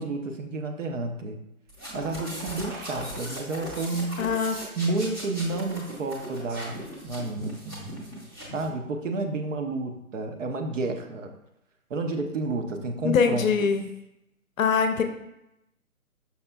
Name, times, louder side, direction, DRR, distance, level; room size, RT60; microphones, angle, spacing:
voice 1, 0.0-1.4 1.9-4.2 4.8-7.8 8.5-11.3 11.9-13.5, right 3 dB, 55° right, 5 dB, 0.6 m, -30 dB
sound 1, 1.7-8.7, equal, 20° right, 0.6 m, -39 dB
voice 2, 4.2-4.6 13.0-13.8 14.6-15.0, left 6 dB, 65° left, 7 dB, 0.6 m, -23 dB
5.6 x 3.3 x 2.2 m, 0.85 s
figure-of-eight pair, 140°, 44 cm